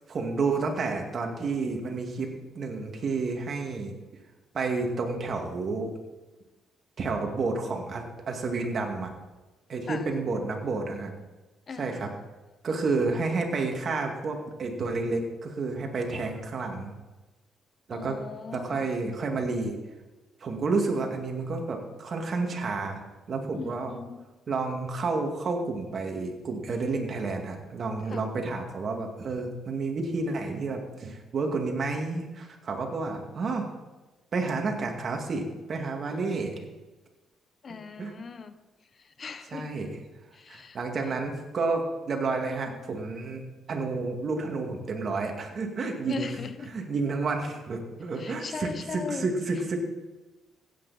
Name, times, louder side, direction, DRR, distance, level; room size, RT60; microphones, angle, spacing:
voice 1, 0.1-3.9 4.5-5.9 7.0-9.1 9.7-11.1 11.8-12.1 12.6-16.9 17.9-18.2 18.5-19.8 20.4-23.0 23.3-24.0 24.5-33.7 34.3-36.7 37.7-38.1 39.5-39.9 40.5-46.3 46.7-49.8, right 3 dB, 50° right, 2 dB, 2.3 m, -30 dB
voice 2, 11.7-12.0 17.9-18.9 23.5-24.2 28.1-28.3 37.6-38.5 39.2-39.7 40.3-40.8 46.1-46.7 48.2-49.3, left 5 dB, 45° left, 11 dB, 0.9 m, -38 dB
16.0 x 8.8 x 4.3 m, 1.1 s
cardioid pair, 90°, 0 cm